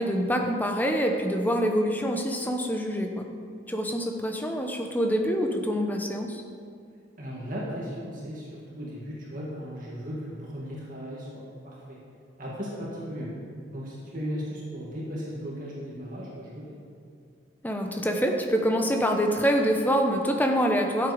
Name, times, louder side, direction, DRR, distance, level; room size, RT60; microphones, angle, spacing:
voice 1, 0.0-3.3 3.7-6.4 17.6-21.1, equal, 10° left, 3 dB, 0.9 m, -25 dB
voice 2, 7.2-12.0 12.4-13.3 13.7-16.7, equal, 45° right, -5 dB, 2.0 m, -36 dB
12.5 x 8.0 x 5.1 m, 2.3 s
head